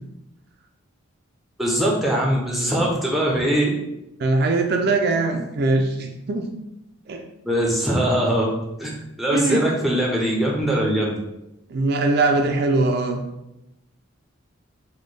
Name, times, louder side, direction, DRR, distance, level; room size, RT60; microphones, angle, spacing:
voice 1, 1.6-3.7 7.5-8.5 8.8-8.9 9.2-11.2, right 1 dB, ahead, -3 dB, 0.5 m, -21 dB
voice 2, 4.2-6.5 7.1-7.2 9.3-9.7 11.7-13.2, right 3 dB, 50° right, 3 dB, 0.3 m, -21 dB
4.1 x 2.2 x 3.2 m, 0.90 s
head